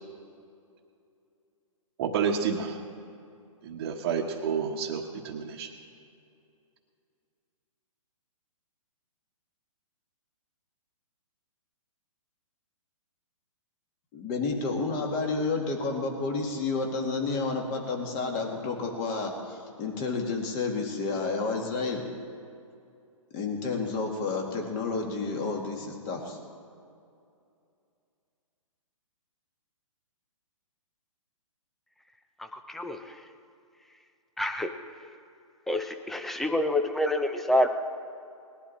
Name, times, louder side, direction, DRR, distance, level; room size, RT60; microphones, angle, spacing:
voice 1, 2.0-2.8 3.6-5.7, right 6 dB, 40° right, -2 dB, 1.2 m, -30 dB
voice 2, 14.1-22.0 23.3-26.4, left 4 dB, 30° left, 2 dB, 2.1 m, -30 dB
voice 3, 32.4-33.3 34.4-34.7 35.7-37.7, left 1 dB, ahead, 7 dB, 0.4 m, -28 dB
20.0 x 11.5 x 4.2 m, 2.5 s
hypercardioid pair, 145°, 17 cm